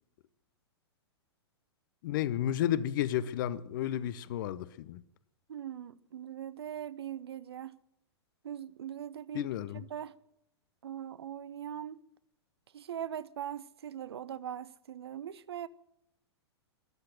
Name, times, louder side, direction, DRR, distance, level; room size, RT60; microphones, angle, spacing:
voice 1, 2.0-5.0 9.3-9.8, left 11 dB, 45° left, 0.8 m, -32 dB
voice 2, 5.5-7.8 8.4-10.1 10.8-12.0 12.7-15.7, right 10 dB, 65° right, 0.7 m, -41 dB
13.5 x 11.5 x 7.8 m
figure-of-eight pair, 105°, 14 cm